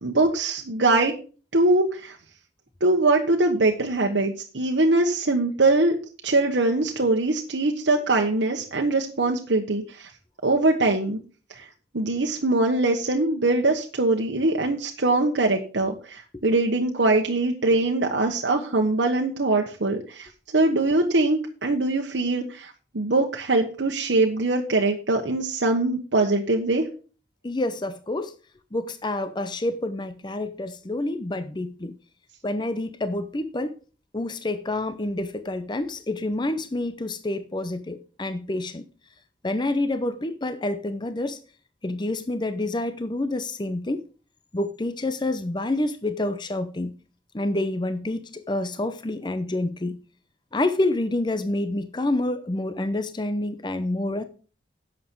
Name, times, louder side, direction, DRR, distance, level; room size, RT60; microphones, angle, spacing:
voice 1, 0.0-1.1 1.5-2.2 2.8-5.9 6.2-10.1 10.4-11.2 11.5-11.6 11.9-26.9, right 2 dB, 75° right, 1.2 m, -22 dB
voice 2, 27.4-28.3 28.7-32.0 32.4-33.8 34.1-38.8 39.4-41.4 41.8-44.0 44.5-46.9 47.3-50.0 50.5-54.2, left 2 dB, 25° left, 0.6 m, -28 dB
11.0 x 7.4 x 4.6 m
head